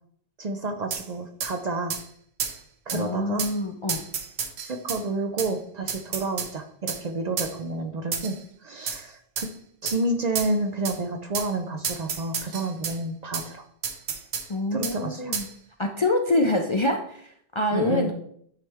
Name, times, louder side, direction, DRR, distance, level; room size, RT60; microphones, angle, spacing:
voice 1, 0.4-1.9 2.9-3.4 4.6-8.4 8.6-9.5 9.8-13.6 14.7-15.3 17.7-18.1, right 2 dB, 50° right, 6 dB, 0.5 m, -30 dB
sound 1, 0.9-1.1 1.4-1.5 1.9-2.0 2.4-2.6 2.9-3.0 3.4-3.5 3.9-5.0 5.4-5.5 5.9-6.5 6.9-7.0 7.4-7.5 8.1-8.4 8.9-9.0 9.4-9.5 9.9-10.0 10.4-10.5 10.9-11.0 11.3-11.5 11.8-13.0 13.3-13.5 13.8-14.5 14.8-15.0 15.3-15.5, right 6 dB, 80° right, 1.0 m, -30 dB
voice 2, 2.9-4.0 14.5-15.5 15.8-18.1, left 2 dB, 45° left, 3 dB, 0.4 m, -25 dB
9.1 x 3.2 x 3.4 m, 0.66 s
omnidirectional pair, 1.1 m